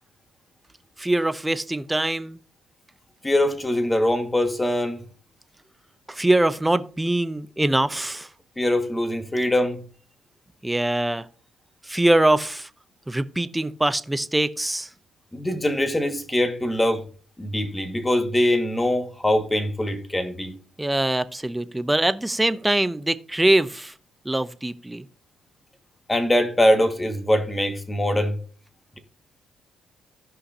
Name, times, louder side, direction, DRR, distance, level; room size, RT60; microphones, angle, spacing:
voice 1, 1.0-2.4 6.1-8.3 10.6-11.3 11.8-12.7 13.1-14.9 20.8-23.9 24.2-25.0, right 1 dB, 10° right, 0.7 m, -23 dB
voice 2, 3.2-5.0 8.6-9.8 15.3-17.0 17.4-20.6 26.1-28.4, left 1 dB, 15° left, 1.8 m, -22 dB
16.0 x 5.6 x 2.8 m
cardioid pair, 90°, 0 cm